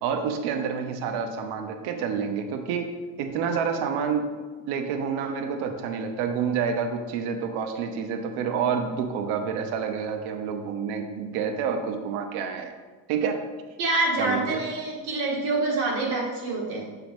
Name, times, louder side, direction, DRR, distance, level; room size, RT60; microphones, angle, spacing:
voice 1, 0.0-4.3 4.6-12.7 13.1-13.4 14.2-14.6, right 6 dB, 60° right, 6 dB, 0.7 m, -28 dB
voice 2, 13.8-16.8, right 2 dB, 80° right, -3 dB, 1.8 m, -26 dB
6.9 x 5.1 x 3.1 m, 1.4 s
cardioid pair, 170°, 42 cm